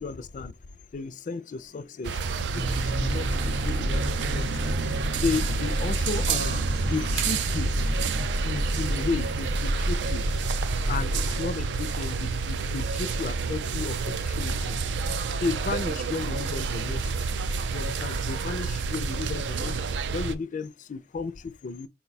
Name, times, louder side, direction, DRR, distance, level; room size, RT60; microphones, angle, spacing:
voice 1, 0.0-0.5 0.9-2.2 2.5-4.8 5.2-7.7 8.4-10.2 10.9-14.8 15.4-17.0 17.7-19.7 20.1-21.9, left 4 dB, 45° left, 0.4 m, -34 dB
sound 1, 2.0-20.4, right 5 dB, 85° right, 0.4 m, -29 dB
sound 2, 2.5-11.4, equal, 60° right, 0.7 m, -30 dB
4.6 x 2.2 x 4.0 m
head